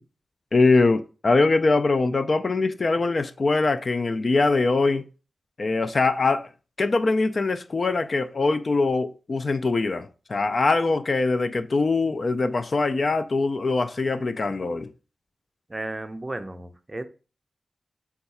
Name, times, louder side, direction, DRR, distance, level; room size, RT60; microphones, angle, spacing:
voice 1, 0.5-5.0 5.6-6.5 6.8-14.9, left 3 dB, 50° left, 0.3 m, -22 dB
voice 2, 15.7-17.1, right 2 dB, 25° right, 0.4 m, -34 dB
4.5 x 2.3 x 4.1 m
wide cardioid pair, 90°, 0 cm